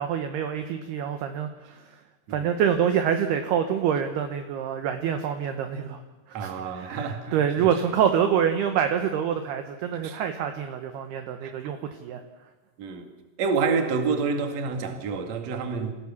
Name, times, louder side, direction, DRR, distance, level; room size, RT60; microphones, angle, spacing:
voice 1, 0.0-1.8 2.3-6.0 6.4-12.2, right 8 dB, 70° right, 2.6 m, -26 dB
voice 2, 6.3-7.7 10.0-10.2 11.4-11.5 12.8-13.1 13.4-15.9, right 5 dB, 45° right, 2.4 m, -28 dB
27.5 x 16.5 x 7.2 m
omnidirectional pair, 5.8 m